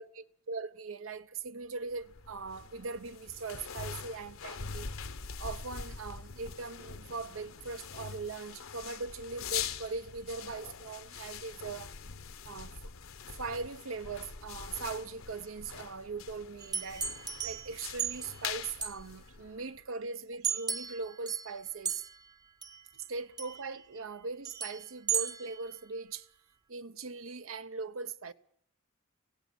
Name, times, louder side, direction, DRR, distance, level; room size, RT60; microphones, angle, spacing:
voice 1, 0.0-4.9 5.4-11.9 12.4-12.9 13.3-17.1 17.4-22.0 22.9-26.3 26.7-28.3, right 4 dB, 80° right, 0.8 m, -40 dB
sound 1, 2.0-19.8, left 7 dB, 85° left, 1.1 m, -43 dB
sound 2, 16.6-18.4 18.8-19.0 20.4-21.6 21.8-22.3 22.6-22.8 23.4-23.8 24.4-25.8, right 7 dB, 20° right, 0.8 m, -36 dB
17.5 x 16.5 x 9.4 m
head